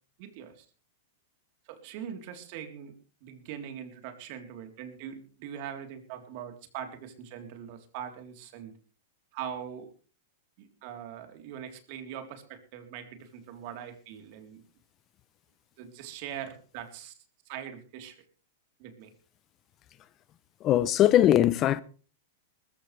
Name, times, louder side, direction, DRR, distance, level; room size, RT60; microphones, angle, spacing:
voice 1, 0.2-0.7 1.7-2.9 3.2-8.7 9.3-9.9 10.6-14.6 15.8-17.1 17.5-18.2 18.8-19.1, right 9 dB, 50° right, 3.7 m, -42 dB
voice 2, 20.6-21.8, left 12 dB, 30° left, 0.7 m, -21 dB
20.0 x 14.5 x 3.4 m
supercardioid pair, 145°, 0 cm